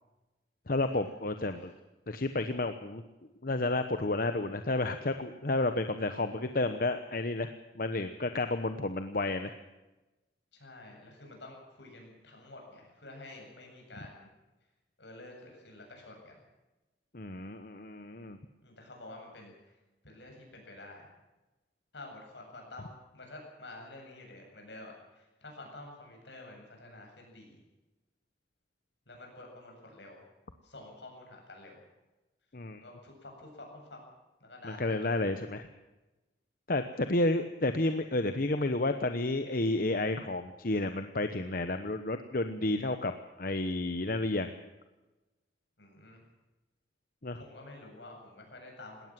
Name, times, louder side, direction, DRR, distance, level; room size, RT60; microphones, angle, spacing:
voice 1, 0.7-1.7 2.1-3.0 3.4-9.5 17.1-18.4 32.5-32.8 34.6-35.7 36.7-44.5 47.2-47.4, left 2 dB, 50° left, 8 dB, 1.0 m, -31 dB
voice 2, 10.5-14.3 15.0-16.4 18.6-19.5 20.0-21.1 21.9-27.6 29.1-30.2 30.6-31.8 32.8-34.0 34.4-35.1 36.9-37.2 45.8-46.2 47.4-49.1, left 2 dB, 75° left, 1 dB, 7.9 m, -49 dB
20.5 x 17.5 x 7.6 m, 1.1 s
head